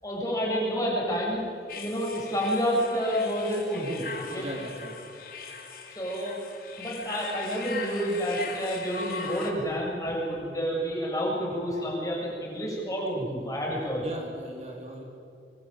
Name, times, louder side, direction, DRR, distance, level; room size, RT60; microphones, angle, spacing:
voice 1, 0.0-1.4 1.7-4.5 5.9-6.4 6.8-14.0, equal, 20° left, -3 dB, 7.1 m, -29 dB
sound 1, 1.7-9.5, left 4 dB, 55° left, 3.2 m, -40 dB
voice 2, 4.4-5.0 14.0-15.0, equal, 35° right, -1 dB, 3.6 m, -39 dB
25.0 x 21.0 x 9.2 m, 2.5 s
head